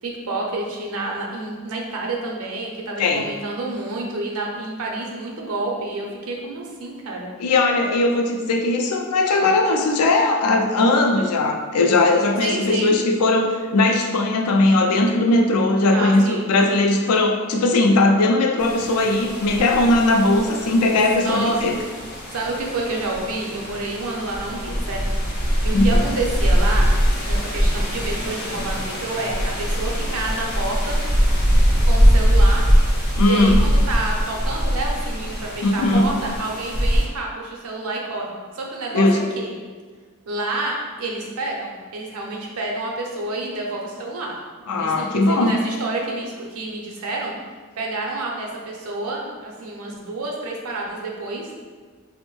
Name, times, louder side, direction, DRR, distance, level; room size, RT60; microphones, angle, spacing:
voice 1, 0.0-7.3 12.4-12.9 15.9-16.5 21.2-21.6 22.3-25.0 25.6-26.9 27.2-31.0 31.8-32.6 33.2-39.1 39.4-39.5 40.3-47.3 47.8-51.5, right 2 dB, 75° right, -1 dB, 0.6 m, -29 dB
voice 2, 7.4-21.8 25.7-26.0 33.2-33.6 35.6-36.1 38.9-39.3 44.7-45.5, left 2 dB, 90° left, 2 dB, 0.4 m, -19 dB
sound 1, 18.6-37.1, equal, 40° left, 0.7 m, -21 dB
3.4 x 2.1 x 3.0 m, 1.5 s
head